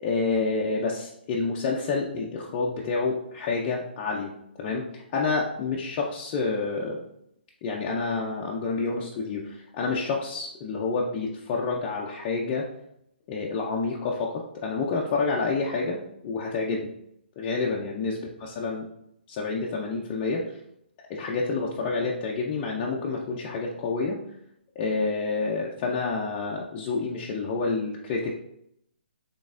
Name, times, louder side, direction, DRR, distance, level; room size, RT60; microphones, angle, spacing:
voice 1, 0.0-4.3 4.6-7.0 7.6-12.7 13.3-16.0 16.2-16.9 17.4-18.9 19.3-20.6 21.1-24.2 24.8-28.3, left 4 dB, 25° left, -3 dB, 0.3 m, -28 dB
4.0 x 3.4 x 2.5 m, 0.76 s
hypercardioid pair, 160°, 6 cm